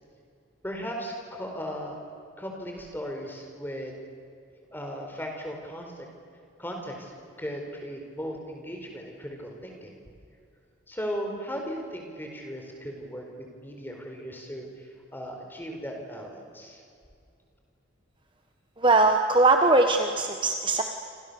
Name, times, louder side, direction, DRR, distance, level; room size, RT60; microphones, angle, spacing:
voice 1, 0.6-2.0 2.4-4.0 4.7-6.1 6.6-9.9 10.9-16.8, equal, 10° left, 2 dB, 4.6 m, -37 dB
voice 2, 18.8-20.8, right 2 dB, 25° right, 5 dB, 1.2 m, -21 dB
28.5 x 26.5 x 7.1 m, 2.4 s
head